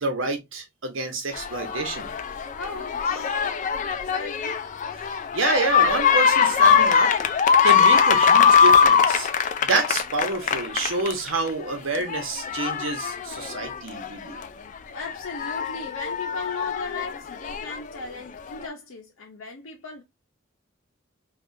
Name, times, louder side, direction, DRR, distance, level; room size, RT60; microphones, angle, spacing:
voice 1, 0.0-2.1 5.3-7.3 7.6-14.4, right 3 dB, 70° right, 1.0 m, -28 dB
sound 1, 1.3-11.5 11.9-14.5 15.0-17.8 18.6-18.7, left 6 dB, 40° left, 0.3 m, -21 dB
voice 2, 2.6-4.6 14.9-20.0, left 3 dB, 80° left, 0.7 m, -37 dB
3.4 x 2.4 x 2.6 m
head